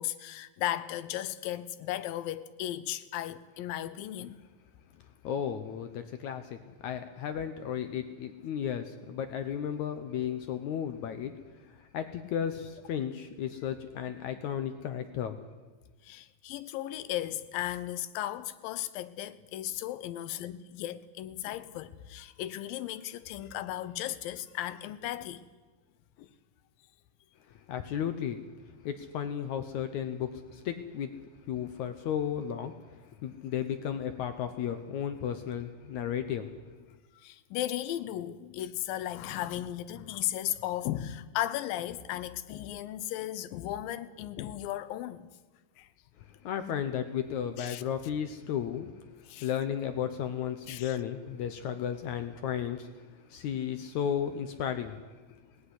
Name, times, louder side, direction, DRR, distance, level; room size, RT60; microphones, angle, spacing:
voice 1, 0.0-4.4 16.0-25.5 26.2-26.3 37.2-45.3 45.8-45.9 47.6-47.8 49.3-49.5 50.7-51.0, left 13 dB, 85° left, 2.6 m, -36 dB
voice 2, 5.2-11.3 11.7-15.4 27.6-28.4 28.8-31.1 31.5-32.7 33.2-36.5 46.4-48.9 49.4-55.0 55.3-55.4, left 9 dB, 70° left, 2.0 m, -34 dB
18.5 x 15.0 x 9.8 m
omnidirectional pair, 4.0 m